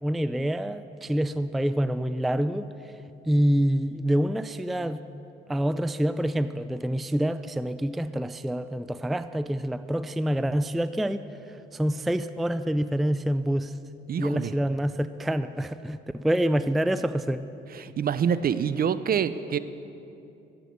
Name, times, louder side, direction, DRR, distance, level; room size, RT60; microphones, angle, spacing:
voice 1, 0.0-2.9 3.2-5.0 5.5-13.8 14.2-17.4, equal, ahead, 13 dB, 0.3 m, -27 dB
voice 2, 14.1-14.5 17.7-19.6, right 7 dB, 50° right, 14 dB, 0.6 m, -26 dB
13.5 x 8.2 x 8.2 m, 2.8 s
cardioid pair, 90°, 20 cm